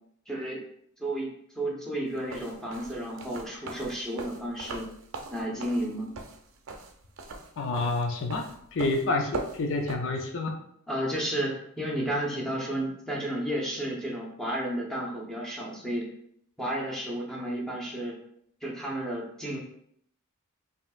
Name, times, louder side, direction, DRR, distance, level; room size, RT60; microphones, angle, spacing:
voice 1, 0.3-0.6 1.0-1.3 1.5-4.9 5.3-6.1 10.9-16.1 16.6-18.2 18.6-19.6, right 1 dB, 5° left, -4 dB, 0.9 m, -32 dB
sound 1, 2.2-10.0, right 3 dB, 60° right, 0.5 m, -40 dB
voice 2, 7.6-8.4 8.7-10.6, left 2 dB, 60° left, 3 dB, 0.5 m, -28 dB
5.2 x 2.8 x 2.4 m, 0.68 s
head